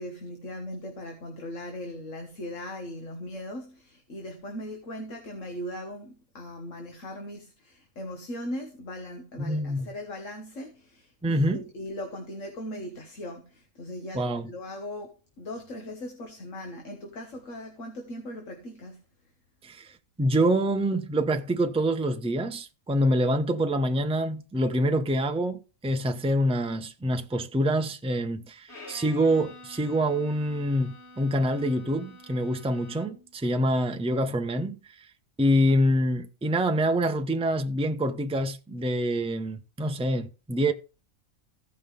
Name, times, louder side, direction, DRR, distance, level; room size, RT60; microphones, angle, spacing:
voice 1, 0.0-19.0, left 1 dB, 70° left, 1.8 m, -39 dB
voice 2, 9.4-9.9 11.2-11.6 14.1-14.5 19.6-35.1 35.4-40.7, equal, 5° right, 0.4 m, -26 dB
Bowed string instrument, 28.7-33.4, left 2 dB, 55° left, 2.4 m, -48 dB
15.5 x 5.5 x 3.3 m
omnidirectional pair, 1.4 m